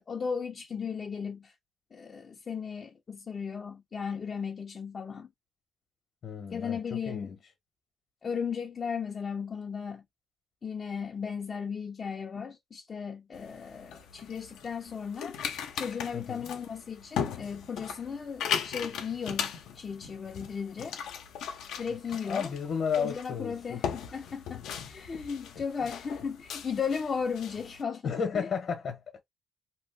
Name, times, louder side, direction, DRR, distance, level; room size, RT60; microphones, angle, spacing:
voice 1, 0.0-1.5 1.9-5.3 6.5-7.4 8.2-10.0 10.6-15.4 15.7-21.0 21.8-22.5 23.0-28.5, left 6 dB, 40° left, 0.6 m, -36 dB
voice 2, 6.2-7.3 16.1-16.5 22.2-24.2 28.0-29.2, left 6 dB, 60° left, 1.0 m, -33 dB
sound 1, 13.3-27.8, left 8 dB, 85° left, 0.7 m, -38 dB
3.0 x 2.1 x 3.2 m
cardioid pair, 90°, 0 cm